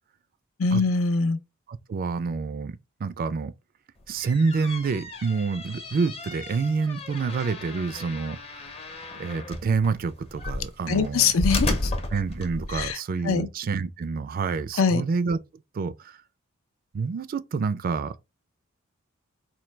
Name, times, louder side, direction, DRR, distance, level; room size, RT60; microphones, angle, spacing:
voice 1, 0.6-1.4 10.9-11.9 12.7-13.0 13.2-13.5 14.8-15.0, left 4 dB, 75° left, 0.5 m, -23 dB
voice 2, 1.7-3.5 4.1-8.7 9.1-11.3 12.1-15.4 15.7-16.1 16.9-18.1, right 4 dB, 45° right, 0.3 m, -28 dB
sound 1, 4.0-12.9, left 2 dB, 30° left, 0.7 m, -33 dB
4.4 x 2.2 x 3.2 m
head